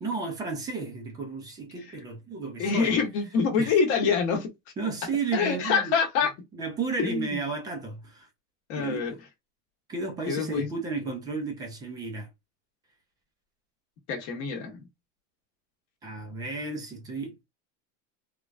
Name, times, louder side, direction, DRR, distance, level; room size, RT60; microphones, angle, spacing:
voice 1, 0.0-3.0 3.6-3.7 4.8-5.9 6.5-8.3 8.8-9.1 9.9-12.3 16.0-17.3, right 4 dB, 10° right, 0.3 m, -33 dB
voice 2, 2.6-4.5 5.3-6.3 7.0-7.4 8.7-9.2 10.3-10.7 14.1-14.8, left 5 dB, 40° left, 0.9 m, -26 dB
3.2 x 2.2 x 2.4 m
supercardioid pair, 165°, 37 cm